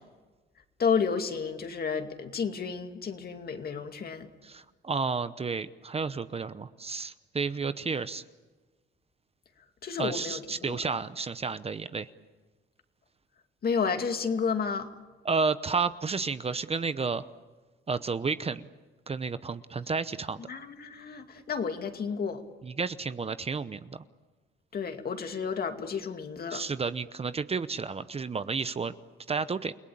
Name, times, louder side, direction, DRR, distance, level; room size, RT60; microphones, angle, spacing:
voice 1, 0.8-4.3 9.8-10.8 13.6-14.9 20.5-22.4 24.7-26.6, left 6 dB, 50° left, 6 dB, 2.4 m, -31 dB
voice 2, 4.4-8.2 10.0-12.1 15.2-17.3 17.9-18.6 19.1-20.4 22.6-24.1 26.5-28.9 29.3-29.7, right 4 dB, 30° right, 13 dB, 0.8 m, -31 dB
29.0 x 18.5 x 8.7 m, 1.3 s
cardioid pair, 90°, 20 cm